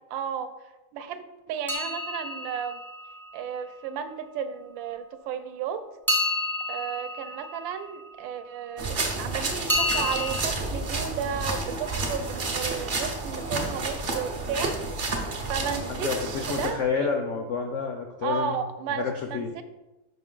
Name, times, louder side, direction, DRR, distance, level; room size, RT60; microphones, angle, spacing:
voice 1, 0.1-0.5 0.9-2.8 3.3-5.8 6.7-14.8 15.5-17.1 18.2-19.6, right 7 dB, 80° right, 9 dB, 1.3 m, -33 dB
sound 1, 1.7-3.7 6.1-8.4 9.7-10.4, left 2 dB, 5° left, 0.3 m, -30 dB
sound 2, 8.8-16.7, right 3 dB, 60° right, 0.5 m, -30 dB
voice 2, 15.9-18.6 18.9-19.5, left 5 dB, 85° left, 3 dB, 0.6 m, -29 dB
5.8 x 5.3 x 3.7 m, 1.0 s
omnidirectional pair, 2.1 m